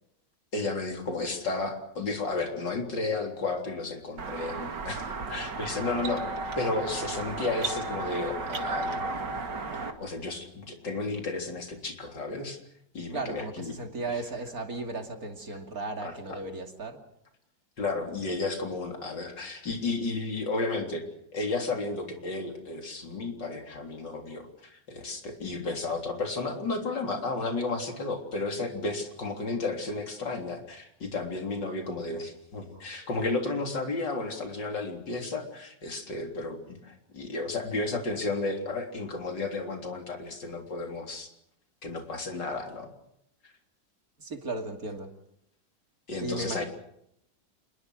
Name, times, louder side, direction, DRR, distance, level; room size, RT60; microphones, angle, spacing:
voice 1, 0.5-6.3 6.6-9.0 10.0-12.6 12.9-13.7 14.1-14.2 16.0-16.4 17.8-21.0 21.3-41.3 41.8-42.9 43.4-43.5 46.1-46.6, left 3 dB, 80° left, 3 dB, 4.3 m, -33 dB
sound 1, 4.2-9.9, right 3 dB, 75° right, 2.7 m, -34 dB
voice 2, 13.1-17.0 32.7-33.1 44.2-45.1 46.2-46.6, right 2 dB, 55° right, 4 dB, 2.9 m, -36 dB
27.5 x 21.0 x 6.3 m, 0.75 s
omnidirectional pair, 1.9 m